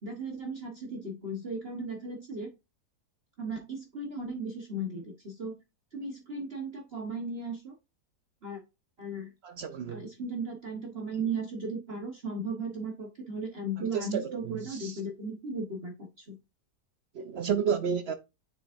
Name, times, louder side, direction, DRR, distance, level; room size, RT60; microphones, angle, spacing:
voice 1, 0.0-2.5 3.4-5.5 5.9-7.7 8.4-8.6 9.0-9.3 9.9-16.4, right 2 dB, 40° right, 1.4 m, -36 dB
voice 2, 9.4-10.1 13.9-15.0 17.1-18.1, right 7 dB, 75° right, 0.6 m, -31 dB
7.1 x 6.0 x 2.6 m
omnidirectional pair, 1.7 m